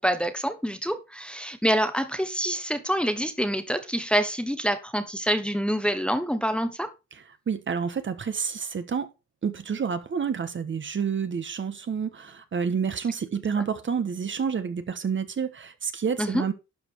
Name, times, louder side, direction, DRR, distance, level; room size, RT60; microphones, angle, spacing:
voice 1, 0.0-6.9 16.2-16.4, equal, 5° left, 1.2 m, -26 dB
voice 2, 7.5-9.1 9.4-16.5, right 6 dB, 40° right, 1.3 m, -29 dB
12.0 x 5.0 x 4.6 m
cardioid pair, 90°, 30 cm